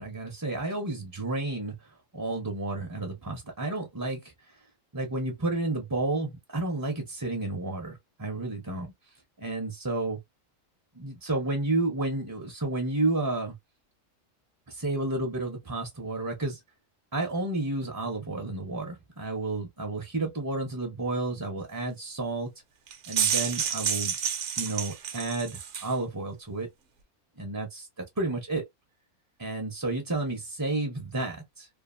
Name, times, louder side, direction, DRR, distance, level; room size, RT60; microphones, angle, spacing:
voice 1, 0.0-4.3 4.9-8.9 9.4-10.2 10.9-13.5 14.7-16.6 17.1-22.5 23.1-24.2 24.6-26.7 27.4-27.9 28.2-28.6 29.4-31.7, right 2 dB, 25° right, 0.5 m, -31 dB
sound 1, 22.9-25.9, right 8 dB, 60° right, 0.8 m, -29 dB
2.8 x 2.4 x 2.4 m
omnidirectional pair, 1.5 m